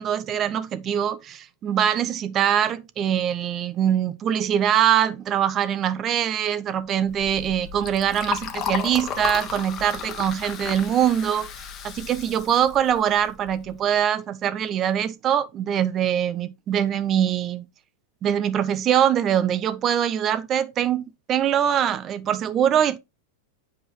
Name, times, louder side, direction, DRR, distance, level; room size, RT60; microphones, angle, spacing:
voice 1, 0.0-17.6 18.2-23.0, right 9 dB, 35° right, 0.7 m, -23 dB
Liquid, 7.0-13.7, left 8 dB, 35° left, 1.2 m, -34 dB
7.9 x 5.0 x 3.0 m
hypercardioid pair, 100°, 0 cm